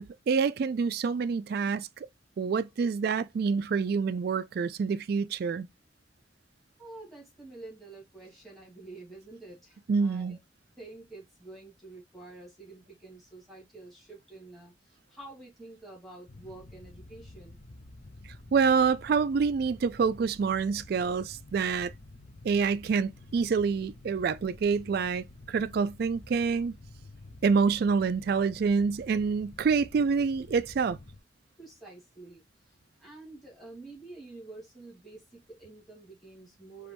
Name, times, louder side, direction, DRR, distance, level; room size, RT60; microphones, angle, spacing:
voice 1, 0.0-1.9 2.4-5.7 9.9-10.4 18.5-21.9 22.4-26.7 27.4-31.0, right 5 dB, 50° right, 0.3 m, -27 dB
voice 2, 6.8-10.4 10.8-17.6 31.6-36.9, right 2 dB, ahead, 2.2 m, -48 dB
sound 1, 16.3-31.2, left 2 dB, 40° left, 0.7 m, -50 dB
5.1 x 3.0 x 3.0 m
head